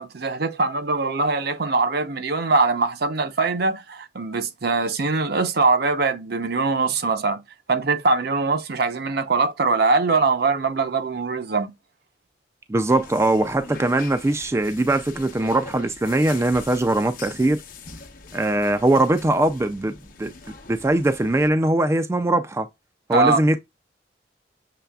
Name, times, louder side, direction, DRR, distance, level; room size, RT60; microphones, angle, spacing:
voice 1, 0.0-7.4 7.7-11.7 23.1-23.4, right 3 dB, 60° right, 0.7 m, -22 dB
voice 2, 12.7-17.6 18.3-20.3 20.7-22.7 23.1-23.6, right 2 dB, 15° right, 0.3 m, -21 dB
sound 1, 12.9-21.5, left 4 dB, 50° left, 0.9 m, -43 dB
6.8 x 3.2 x 2.3 m
head